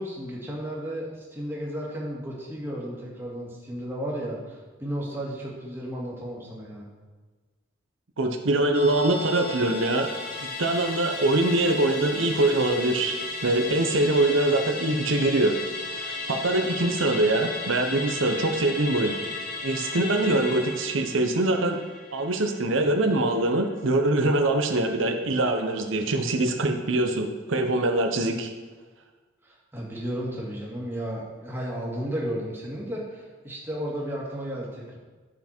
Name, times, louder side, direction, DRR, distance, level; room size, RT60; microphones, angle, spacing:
voice 1, 0.0-6.9 29.4-35.0, equal, 10° right, -4 dB, 1.8 m, -33 dB
voice 2, 8.2-10.1 10.4-13.2 13.4-15.6 16.0-19.1 19.6-21.8 22.1-28.5, right 2 dB, 80° right, 5 dB, 0.8 m, -23 dB
Musical instrument, 8.7-23.4 23.7-23.8, left 3 dB, 50° left, 1.3 m, -35 dB
9.9 x 5.8 x 4.4 m, 1.3 s
head